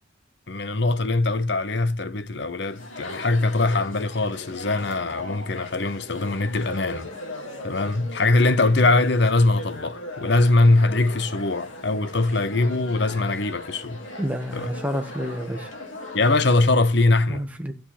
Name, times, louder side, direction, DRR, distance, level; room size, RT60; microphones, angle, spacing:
voice 1, 0.5-7.1 7.6-14.0 14.5-14.7 16.1-17.5, left 2 dB, 60° left, 0.9 m, -22 dB
Chatter, 2.6-16.7, left 1 dB, 85° left, 3.3 m, -38 dB
voice 2, 14.2-15.7 17.3-17.7, equal, 10° right, 1.5 m, -29 dB
12.5 x 7.8 x 4.3 m
head